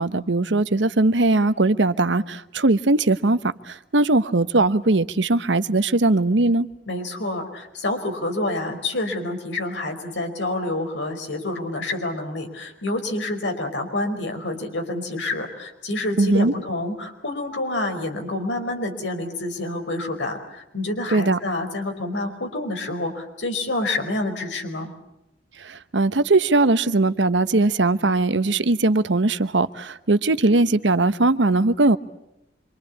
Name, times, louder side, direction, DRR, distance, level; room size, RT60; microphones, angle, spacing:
voice 1, 0.0-6.7 16.2-16.5 21.1-21.4 25.6-32.0, right 2 dB, 80° right, 1.0 m, -20 dB
voice 2, 6.9-24.9, left 2 dB, 80° left, 5.0 m, -28 dB
27.0 x 25.0 x 8.5 m
head